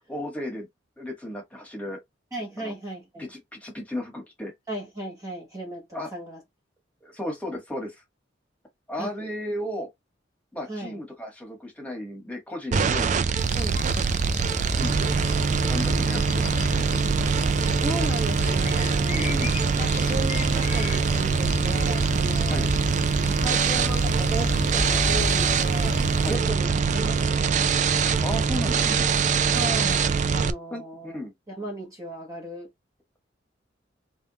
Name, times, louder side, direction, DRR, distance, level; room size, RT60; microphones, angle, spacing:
voice 1, 0.1-0.6 1.0-2.0 2.6-2.7 3.2-4.5 5.9-6.1 7.0-8.0 8.9-9.9 10.5-13.1 14.6-15.1 15.7-16.8 19.1-19.5 22.5-22.7 26.2-26.4 28.2-29.1 30.7-31.3, left 1 dB, 10° left, 1.5 m, -34 dB
voice 2, 2.3-3.3 4.7-6.4 9.0-9.1 10.7-11.0 12.7-13.2 13.5-13.8 17.2-17.4 17.8-19.4 19.8-22.7 23.3-27.6 29.5-31.2 31.5-32.7, right 1 dB, 20° right, 1.2 m, -36 dB
sound 1, 12.7-30.5, right 5 dB, 40° right, 0.3 m, -23 dB
sound 2, 13.4-26.4, left 2 dB, 40° left, 0.7 m, -32 dB
3.5 x 3.3 x 2.9 m
head